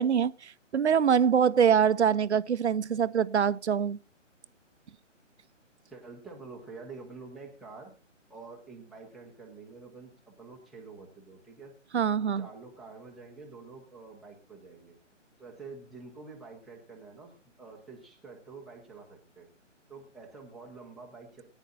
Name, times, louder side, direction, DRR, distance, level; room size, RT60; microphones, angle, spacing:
voice 1, 0.0-4.0 11.9-12.5, right 7 dB, 60° right, 0.7 m, -24 dB
voice 2, 5.9-8.0 8.3-11.8 12.2-15.0 15.4-19.5 19.9-21.4, right 4 dB, ahead, 0.7 m, -48 dB
19.5 x 9.9 x 2.6 m
figure-of-eight pair, 150°, 38 cm